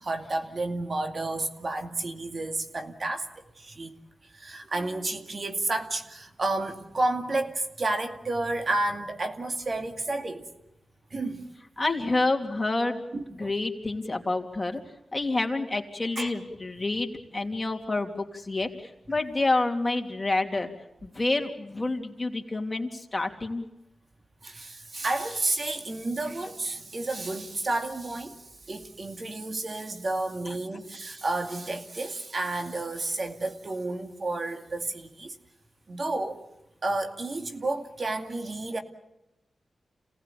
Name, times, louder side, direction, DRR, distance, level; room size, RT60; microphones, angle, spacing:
voice 1, 0.0-3.3 3.6-3.9 4.3-10.5 11.1-11.5 13.1-13.5 16.2-16.3 24.4-28.4 28.7-35.4 35.9-36.4 36.8-38.8, right 2 dB, 50° right, 2.4 m, -31 dB
voice 2, 11.8-13.0 13.4-14.8 15.1-20.7 21.0-23.6 30.5-30.6, left 2 dB, 25° left, 3.1 m, -28 dB
28.0 x 18.5 x 8.6 m
cardioid pair, 55°, 0 cm